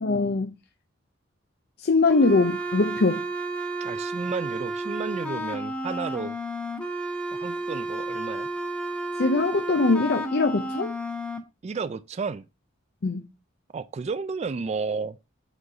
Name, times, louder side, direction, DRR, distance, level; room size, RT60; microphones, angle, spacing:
voice 1, 0.0-0.5 1.8-3.2 9.1-11.0 13.0-13.3, left 3 dB, 55° left, 0.6 m, -22 dB
sound 1, 2.1-11.4, right 1 dB, 5° left, 1.0 m, -32 dB
voice 2, 3.8-6.4 7.3-8.5 11.6-12.4 13.7-15.2, right 4 dB, 35° right, 0.3 m, -32 dB
8.1 x 3.9 x 4.9 m
head